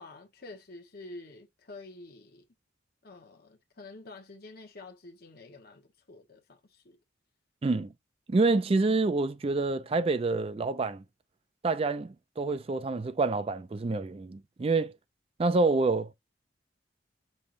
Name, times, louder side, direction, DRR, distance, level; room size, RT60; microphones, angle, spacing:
voice 1, 0.0-2.4 3.0-7.0, left 2 dB, 55° left, 1.0 m, -48 dB
voice 2, 7.6-7.9 8.3-11.0 11.6-14.9 15.4-16.1, right 3 dB, 30° right, 0.4 m, -27 dB
5.4 x 3.2 x 2.5 m
head